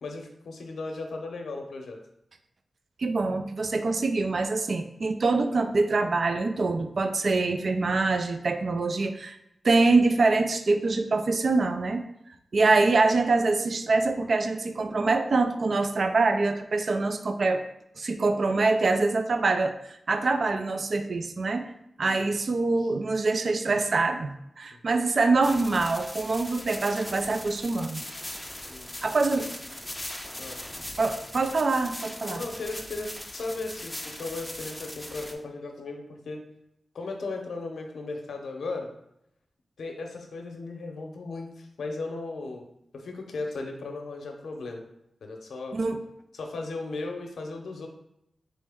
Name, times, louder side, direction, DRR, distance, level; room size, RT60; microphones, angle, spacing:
voice 1, 0.0-2.0 22.1-22.4 22.8-22.9 24.7-24.8 28.7-28.9 30.4-30.6 32.3-36.4 36.9-38.9 39.8-42.7 42.9-44.8 45.2-45.8 46.3-47.9, left 3 dB, 85° left, 3 dB, 0.7 m, -36 dB
voice 2, 3.0-9.4 9.6-12.0 12.5-17.6 18.0-21.7 22.0-28.0 29.0-29.5 31.0-32.4 45.7-46.0, right 3 dB, 60° right, 8 dB, 0.4 m, -25 dB
sound 1, 25.4-35.3, left 1 dB, 10° left, 0.5 m, -40 dB
4.1 x 3.2 x 3.5 m, 0.79 s
cardioid pair, 65°, 0 cm